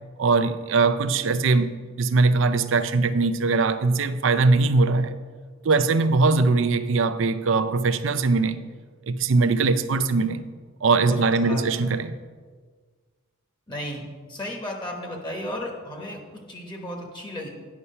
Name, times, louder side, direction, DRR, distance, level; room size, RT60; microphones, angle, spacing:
voice 1, 0.2-1.7 2.0-5.1 5.6-8.6 9.1-10.4 10.8-12.1, right 3 dB, 65° right, 0.5 m, -21 dB
voice 2, 11.1-11.8 13.7-14.0 14.3-17.5, equal, 20° left, 1.1 m, -34 dB
9.6 x 5.6 x 5.6 m
head